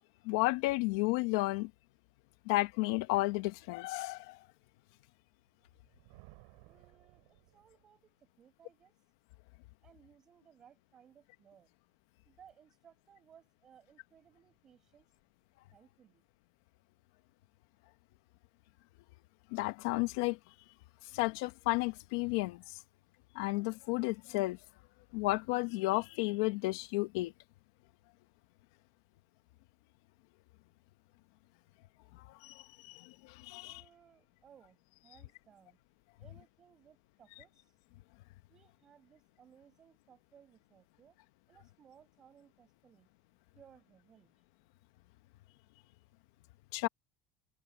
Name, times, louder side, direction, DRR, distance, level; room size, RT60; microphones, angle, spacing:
voice 1, 0.2-1.7 2.5-4.4 19.5-20.4 21.1-22.6 23.3-24.6 25.1-27.3 32.4-33.8 46.7-46.9, left 21 dB, 80° left, 0.8 m, -32 dB
Thunder, 5.6-8.0, right 32 dB, 75° right, 4.9 m, -60 dB
voice 2, 6.6-8.9 9.8-11.7 12.3-15.1 15.7-16.2 33.6-35.8 36.2-37.7 38.5-41.2 41.5-43.1 43.6-44.3, right 8 dB, 25° right, 5.6 m, -62 dB
cardioid pair, 175°, 2 cm